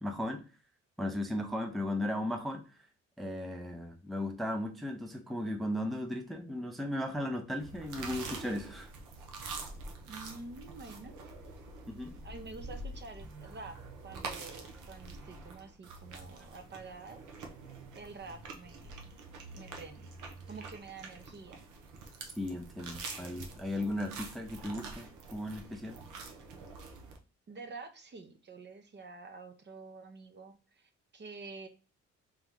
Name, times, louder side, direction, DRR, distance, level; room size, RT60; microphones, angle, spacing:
voice 1, 0.0-0.4 1.0-2.8 3.2-8.9 11.9-12.2 22.4-26.0, left 1 dB, ahead, 4 dB, 0.5 m, -36 dB
sound 1, 7.6-27.2, right 3 dB, 80° right, 0.9 m, -46 dB
voice 2, 10.1-11.1 12.2-13.8 14.0-17.2 17.9-19.1 19.5-20.1 20.4-21.7 27.5-31.7, right 3 dB, 35° right, 7 dB, 0.8 m, -48 dB
3.5 x 3.0 x 3.6 m, 0.35 s
cardioid pair, 90°, 30 cm